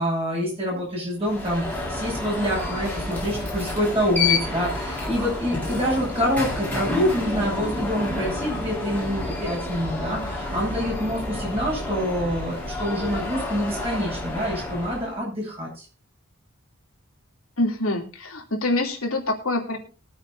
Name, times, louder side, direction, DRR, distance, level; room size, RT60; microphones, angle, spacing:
voice 1, 0.0-15.9, equal, 25° right, -4 dB, 7.7 m, -26 dB
Alarm, 1.2-15.2, left 2 dB, 10° left, 4.4 m, -29 dB
voice 2, 17.6-19.8, left 2 dB, 80° left, 2 dB, 3.0 m, -25 dB
22.5 x 8.9 x 2.7 m, 0.33 s
head